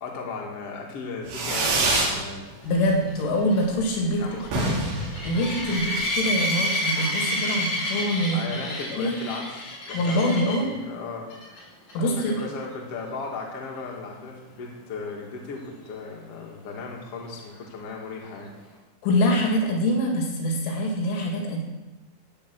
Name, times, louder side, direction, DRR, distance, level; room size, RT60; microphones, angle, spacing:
voice 1, 0.0-2.5 4.2-5.0 5.7-5.8 8.3-11.3 12.0-18.5, left 4 dB, 55° left, -1 dB, 1.7 m, -36 dB
Fireworks, 1.3-2.2 2.5-3.1 3.4-3.5 3.7-3.8 4.1-4.2 4.4-6.1, right 2 dB, 70° right, 5.3 m, -26 dB
voice 2, 2.6-4.2 5.2-8.4 8.9-9.1 9.9-10.7 11.9-12.3 19.0-21.6, equal, 75° left, 0 dB, 4.6 m, -24 dB
sound 1, 2.8-10.7 11.3-11.6 11.9-12.0 12.4-12.5 16.1-16.2, left 1 dB, 35° left, 5.4 m, -29 dB
16.0 x 9.1 x 6.1 m, 1.1 s
omnidirectional pair, 5.8 m